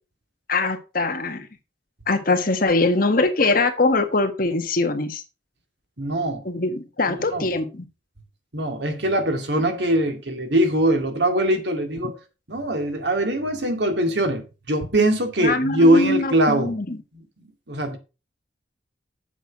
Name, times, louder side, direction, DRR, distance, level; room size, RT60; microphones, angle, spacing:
voice 1, 0.5-1.5 2.1-5.2 6.4-7.8 15.4-17.0, left 3 dB, 50° left, 1.5 m, -22 dB
voice 2, 6.0-6.5 7.1-7.5 8.5-12.2 12.5-16.7 17.7-18.0, right 1 dB, 65° right, 2.2 m, -22 dB
8.0 x 6.3 x 5.3 m
head